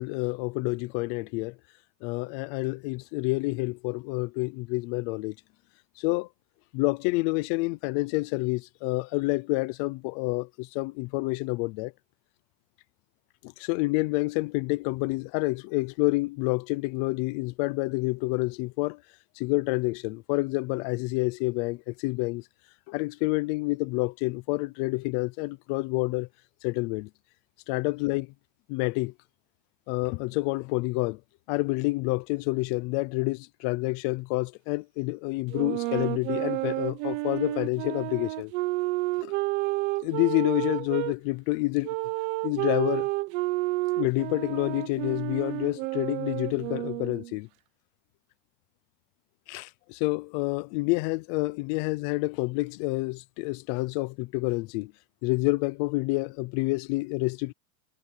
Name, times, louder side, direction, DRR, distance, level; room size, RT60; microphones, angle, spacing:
voice 1, 0.0-1.6 2.0-5.3 6.0-6.3 6.7-11.9 13.4-19.0 19.4-22.4 22.9-26.3 26.6-27.1 27.7-28.3 28.7-29.1 29.9-31.2 31.5-38.5 39.2-39.3 40.0-41.9 42.4-43.1 44.0-47.5 49.5-54.9 55.2-57.5, left 23 dB, 35° left, 0.5 m, -28 dB
sound 1, 35.5-41.1 41.8-47.4, right 21 dB, 45° right, 1.2 m, -30 dB
supercardioid pair, 165°, 46 cm